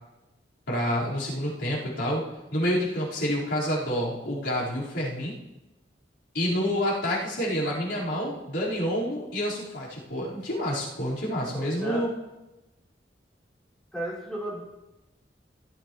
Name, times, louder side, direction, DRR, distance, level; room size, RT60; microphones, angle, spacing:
voice 1, 0.7-2.2 2.5-5.3 6.3-12.1, equal, 80° left, -8 dB, 4.3 m, -28 dB
voice 2, 11.4-12.0 13.9-14.6, right 1 dB, 5° left, -7 dB, 4.9 m, -34 dB
17.0 x 13.0 x 3.1 m, 1.0 s
head